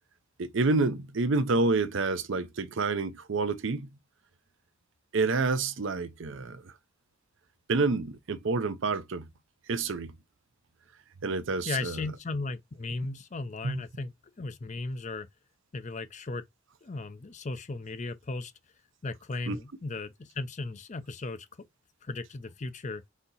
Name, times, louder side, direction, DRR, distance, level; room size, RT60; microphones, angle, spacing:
voice 1, 0.4-3.9 5.1-6.7 7.7-9.3 9.7-10.2 11.2-12.1 13.6-13.8 19.5-19.6, right 3 dB, 55° right, 0.5 m, -28 dB
voice 2, 11.6-14.1 14.4-15.3 15.7-16.4 16.8-18.5 19.0-21.5 22.0-23.0, left 3 dB, 35° left, 0.5 m, -36 dB
4.0 x 2.8 x 4.0 m
head